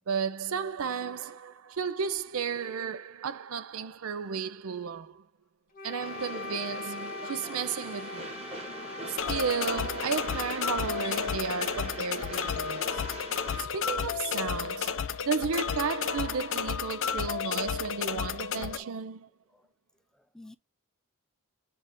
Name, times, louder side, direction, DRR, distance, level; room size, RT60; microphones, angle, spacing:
voice 1, 0.1-5.3 5.8-8.4 9.1-13.0 13.6-19.3, right 6 dB, 70° right, 0.5 m, -33 dB
Wind instrument woodwind instrument, 5.7-13.8, left 4 dB, 40° left, 1.0 m, -43 dB
Train, 6.0-13.6, right 2 dB, 30° right, 1.6 m, -42 dB
sound 1, 9.2-18.8, left 7 dB, 65° left, 0.6 m, -32 dB
voice 2, 20.1-20.5, left 2 dB, 5° left, 0.3 m, -52 dB
7.6 x 2.5 x 5.8 m
head